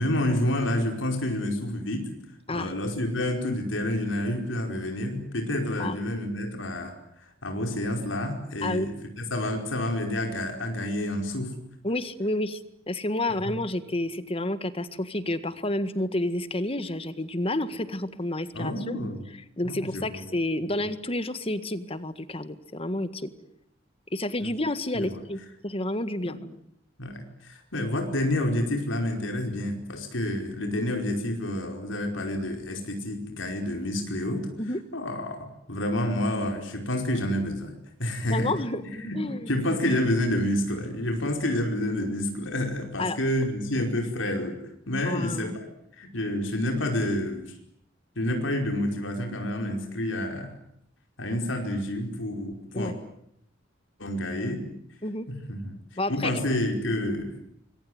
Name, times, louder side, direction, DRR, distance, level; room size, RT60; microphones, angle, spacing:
voice 1, 0.0-2.1 2.5-6.9 7.4-11.5 13.3-13.4 18.5-19.2 19.6-20.2 20.6-20.8 24.4-24.5 24.9-25.2 26.3-26.4 27.0-34.5 34.9-37.7 38.0-38.5 38.9-45.6 46.0-47.4 48.2-50.5 51.2-52.9 54.0-54.6 55.5-55.8 56.1-57.3, left 1 dB, 80° left, 3 dB, 5.1 m, -29 dB
voice 2, 11.8-12.6 12.9-19.0 19.6-23.3 24.1-26.4 34.6-34.8 38.3-38.8 39.2-39.5 43.0-43.2 45.1-45.6 52.7-53.0 55.0-55.3 56.0-56.3, left 1 dB, 30° left, 12 dB, 1.8 m, -30 dB
26.0 x 23.5 x 9.5 m, 0.73 s
head